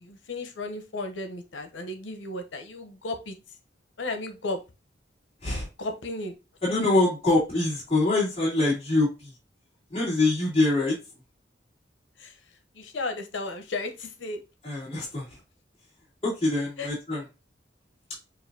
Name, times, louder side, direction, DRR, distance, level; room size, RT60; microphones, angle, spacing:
voice 1, 0.0-3.4 4.0-4.6 5.8-6.3 12.2-12.3 12.8-14.4 16.8-16.9, left 2 dB, 90° left, 6 dB, 0.8 m, -34 dB
voice 2, 6.6-9.3 9.9-11.0 14.6-15.4 16.2-17.2, left 2 dB, 30° left, -8 dB, 2.4 m, -24 dB
6.3 x 2.6 x 2.7 m, 0.27 s
head